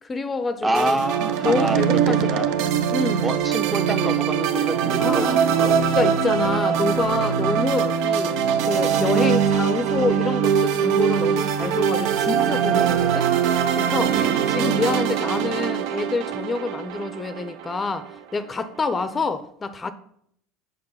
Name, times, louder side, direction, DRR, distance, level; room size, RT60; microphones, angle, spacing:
voice 1, 0.0-1.0 1.4-2.6 2.9-3.3 5.0-5.5 5.9-8.4 8.6-13.3 13.8-14.1 14.5-19.9, left 3 dB, 25° left, 0.6 m, -27 dB
voice 2, 0.6-2.5 3.2-5.8 14.1-14.4, right 2 dB, 15° right, 0.7 m, -27 dB
sound 1, 0.7-18.1, right 8 dB, 65° right, 0.6 m, -22 dB
6.7 x 5.1 x 5.6 m
hypercardioid pair, 85°, 0 cm